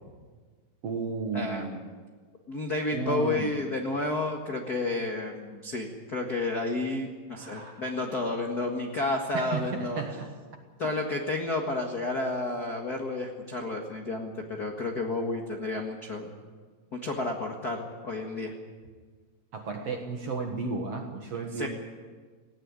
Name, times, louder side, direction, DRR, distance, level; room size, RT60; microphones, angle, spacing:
voice 1, 0.8-1.9 2.9-3.6 7.3-7.9 9.3-10.3 19.5-21.7, right 4 dB, 55° right, 3 dB, 1.9 m, -33 dB
voice 2, 1.3-1.6 2.5-10.0 10.8-16.3 16.9-18.5 21.6-21.7, left 2 dB, 60° left, 1 dB, 1.0 m, -31 dB
19.5 x 17.0 x 9.7 m, 1.5 s
omnidirectional pair, 4.7 m